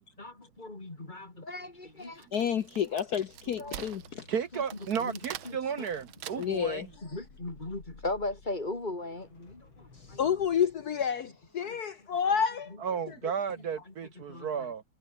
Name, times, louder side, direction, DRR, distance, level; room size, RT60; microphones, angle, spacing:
voice 1, 0.2-2.3 3.6-3.8 5.0-5.2 5.4-5.8 7.0-10.3 11.6-11.8 14.3-14.5, left 2 dB, 25° left, 3.0 m, -38 dB
Wood, 2.0-6.7, right 12 dB, 85° right, 1.8 m, -45 dB
voice 2, 2.3-4.3 6.4-6.9 9.9-12.8 13.1-13.2, left 8 dB, 60° left, 1.4 m, -30 dB
sound 1, 2.9-13.1 13.4-13.7, left 4 dB, 80° left, 5.0 m, -57 dB
voice 3, 4.3-6.8 12.8-14.8, right 7 dB, 55° right, 1.4 m, -33 dB
omnidirectional pair, 2.1 m